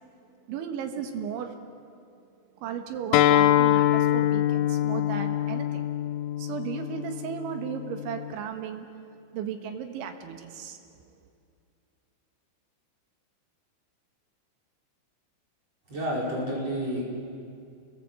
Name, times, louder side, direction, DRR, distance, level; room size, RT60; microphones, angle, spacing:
voice 1, 0.5-1.6 2.6-5.8 6.4-8.9 9.3-10.8, right 8 dB, 70° right, 6 dB, 3.6 m, -35 dB
Acoustic guitar, 3.1-8.3, left 12 dB, 75° left, 3.2 m, -24 dB
voice 2, 15.9-17.0, equal, 30° right, -4 dB, 5.7 m, -29 dB
29.5 x 21.5 x 7.7 m, 2.4 s
omnidirectional pair, 5.9 m